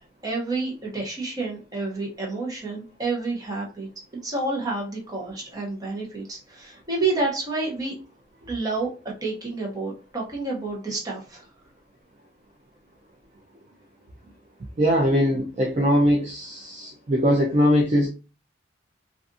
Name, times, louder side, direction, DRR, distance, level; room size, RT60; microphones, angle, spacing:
voice 1, 0.2-3.9 4.2-8.0 8.5-8.9 9.2-11.5, right 3 dB, 20° right, 0.8 m, -29 dB
voice 2, 14.8-18.1, equal, 35° right, 0.4 m, -21 dB
2.4 x 2.4 x 2.6 m
head